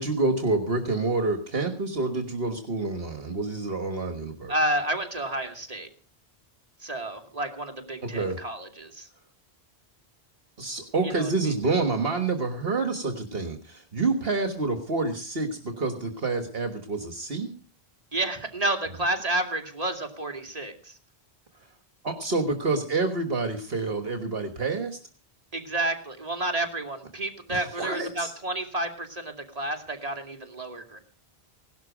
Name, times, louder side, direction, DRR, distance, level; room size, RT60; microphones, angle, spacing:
voice 1, 0.0-4.5 8.1-8.4 10.6-17.5 22.0-25.0 27.5-28.3, right 3 dB, 65° right, 6 dB, 1.7 m, -28 dB
voice 2, 4.5-5.9 6.8-9.1 11.0-11.3 18.1-21.0 25.5-31.0, right 1 dB, 35° right, 4 dB, 2.6 m, -30 dB
17.5 x 12.5 x 5.0 m, 0.40 s
omnidirectional pair, 1.1 m